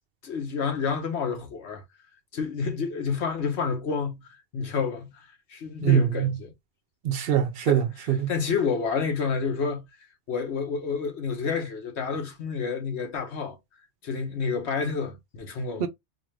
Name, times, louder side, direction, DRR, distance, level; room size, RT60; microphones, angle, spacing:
voice 1, 0.2-1.8 2.3-4.3 4.5-6.5 7.7-7.8 8.3-9.9 10.3-13.6 14.0-15.9, left 5 dB, 70° left, 1.2 m, -29 dB
voice 2, 5.8-6.3 7.0-8.3 15.8-15.9, right 10 dB, 65° right, 0.7 m, -23 dB
4.2 x 2.5 x 3.1 m
omnidirectional pair, 1.2 m